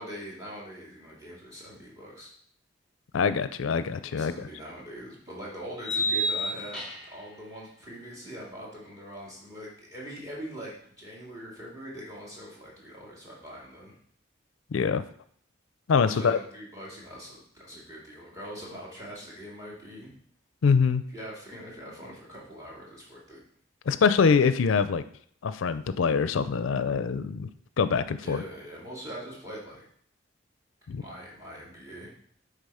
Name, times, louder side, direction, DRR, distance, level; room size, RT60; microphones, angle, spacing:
voice 1, 0.0-2.3 3.9-13.9 16.0-20.1 21.1-23.4 28.2-29.8 31.0-32.1, equal, 15° right, -4 dB, 2.4 m, -42 dB
voice 2, 3.1-4.5 14.7-15.0 15.9-16.4 20.6-21.0 23.9-25.0 25.4-27.5 27.8-28.4 30.9-31.0, left 5 dB, 80° left, 13 dB, 0.4 m, -24 dB
sound 1, 4.1-4.2 5.8-7.2, equal, ahead, 2.3 m, -29 dB
8.3 x 3.8 x 5.5 m, 0.62 s
head